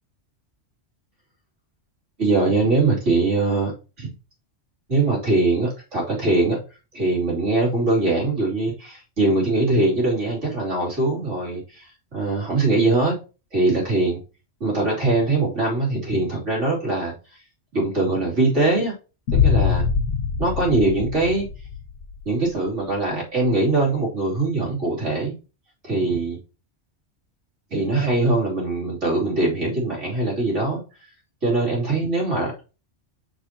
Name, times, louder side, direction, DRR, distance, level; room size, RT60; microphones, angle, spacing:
voice 1, 2.2-4.1 4.9-6.6 6.9-13.2 13.5-14.2 14.6-17.1 17.7-18.9 19.3-19.8 20.4-21.5 22.3-25.4 25.8-26.4 27.7-30.8 31.4-32.5, right 2 dB, 80° right, -4 dB, 3.6 m, -22 dB
Boom, 19.3-22.2, left 6 dB, 70° left, 1.0 m, -23 dB
6.7 x 6.7 x 2.9 m, 0.32 s
omnidirectional pair, 1.2 m